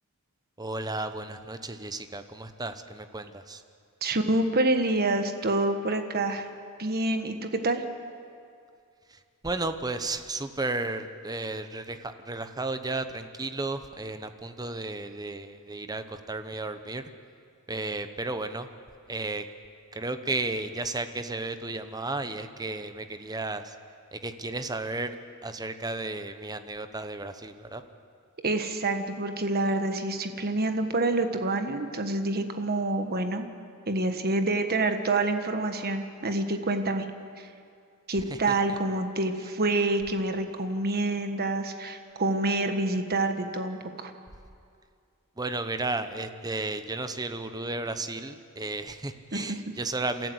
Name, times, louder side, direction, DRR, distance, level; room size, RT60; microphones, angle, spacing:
voice 1, 0.6-3.6 9.1-17.0 17.7-18.7 19.1-19.5 19.9-23.7 24.1-25.1 25.4-27.8 38.5-38.6 45.4-50.3, right 2 dB, 15° right, 9 dB, 0.9 m, -33 dB
voice 2, 4.0-6.5 6.8-7.8 28.4-33.5 33.9-37.1 37.4-37.5 38.1-44.1 49.3-49.4, right 2 dB, 45° right, 7 dB, 1.4 m, -27 dB
28.5 x 14.0 x 7.9 m, 2.4 s
head